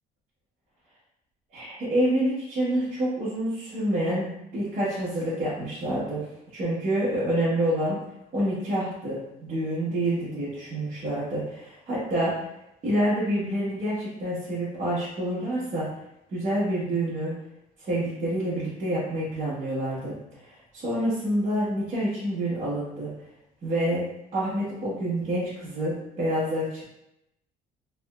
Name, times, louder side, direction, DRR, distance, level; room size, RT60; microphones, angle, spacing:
voice 1, 1.5-6.2 6.5-8.0 8.3-12.4 12.8-15.9 16.3-17.3 17.8-23.1 23.6-24.0 24.3-26.8, right 1 dB, 45° right, -10 dB, 1.0 m, -27 dB
3.4 x 2.8 x 2.3 m, 0.85 s
cardioid pair, 110°, 17 cm